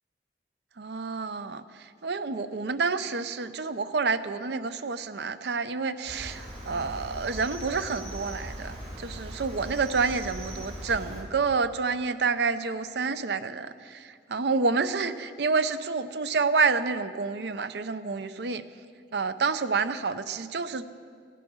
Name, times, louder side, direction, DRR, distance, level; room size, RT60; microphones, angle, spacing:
voice 1, 0.8-18.6 19.1-20.8, right 4 dB, 75° right, 11 dB, 0.6 m, -29 dB
Cricket, 6.0-11.2, equal, 35° right, 3.1 m, -39 dB
17.0 x 11.0 x 6.3 m, 2.2 s
head